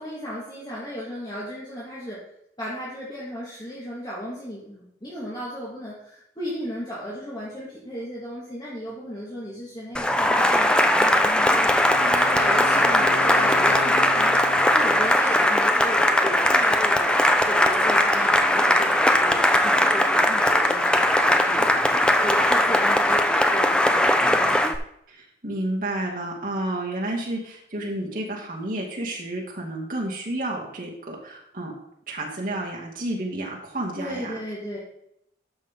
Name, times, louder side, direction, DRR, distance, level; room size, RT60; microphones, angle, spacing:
voice 1, 0.0-2.2 2.6-11.7 12.0-24.4 34.0-34.8, equal, 20° left, -7 dB, 2.0 m, -35 dB
Cheering / Applause, 9.9-24.8, left 1 dB, 5° left, 0.4 m, -19 dB
Wind instrument woodwind instrument, 11.4-15.2, left 2 dB, 75° left, 0.7 m, -36 dB
voice 2, 25.1-31.7 32.1-34.3, right 1 dB, 50° right, -3 dB, 2.5 m, -31 dB
12.5 x 5.6 x 3.8 m, 0.76 s
head